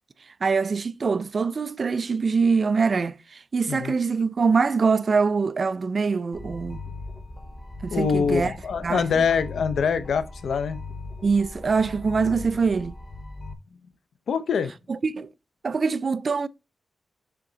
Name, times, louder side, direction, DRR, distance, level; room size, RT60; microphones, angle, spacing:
voice 1, 0.4-6.8 7.8-8.6 8.8-9.3 11.2-13.0 14.9-15.3 15.6-16.5, right 5 dB, 40° right, 0.3 m, -24 dB
sound 1, 6.3-13.5, left 3 dB, 15° left, 0.8 m, -39 dB
voice 2, 7.9-10.8 14.3-14.7, left 6 dB, 80° left, 0.6 m, -24 dB
6.9 x 3.5 x 3.9 m
wide cardioid pair, 130°, 0 cm